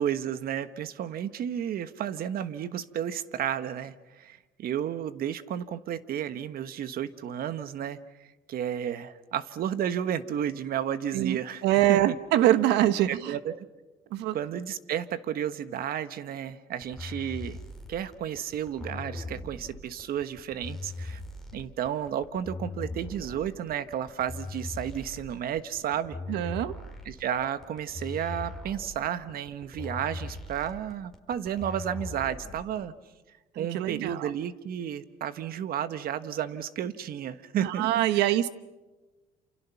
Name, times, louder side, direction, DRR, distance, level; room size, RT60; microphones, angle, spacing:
voice 1, 0.0-8.0 8.5-12.2 13.1-13.7 14.3-17.6 17.9-21.2 21.5-26.4 27.0-32.9 33.5-38.4, right 9 dB, 60° right, 12 dB, 1.4 m, -32 dB
voice 2, 11.1-13.4 14.1-14.3 26.3-26.7 33.6-34.3 37.6-38.5, right 13 dB, 90° right, 14 dB, 1.2 m, -24 dB
sound 1, 16.8-32.8, left 2 dB, ahead, 5.1 m, -40 dB
29.0 x 28.5 x 5.9 m, 1.2 s
cardioid pair, 110°, 17 cm